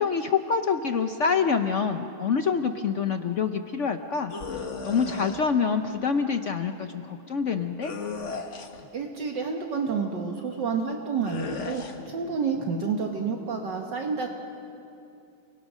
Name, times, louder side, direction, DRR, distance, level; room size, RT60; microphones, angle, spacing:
voice 1, 0.0-7.9, left 6 dB, 75° left, 7 dB, 0.6 m, -26 dB
sound 1, 4.3-5.4 7.8-8.9 11.2-12.0, left 4 dB, 40° left, 1.4 m, -35 dB
voice 2, 8.9-14.3, right 5 dB, 60° right, 2 dB, 1.9 m, -29 dB
29.5 x 21.0 x 6.2 m, 2.6 s
omnidirectional pair, 2.3 m